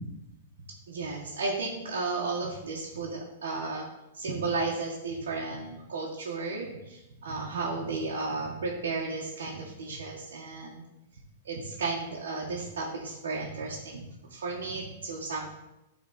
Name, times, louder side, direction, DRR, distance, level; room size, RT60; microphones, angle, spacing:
voice 1, 0.9-3.8 4.1-10.8 11.4-14.0 14.3-15.5, right 3 dB, 85° right, -3 dB, 1.6 m, -33 dB
11.5 x 4.2 x 4.3 m, 0.95 s
hypercardioid pair, 140°, 0 cm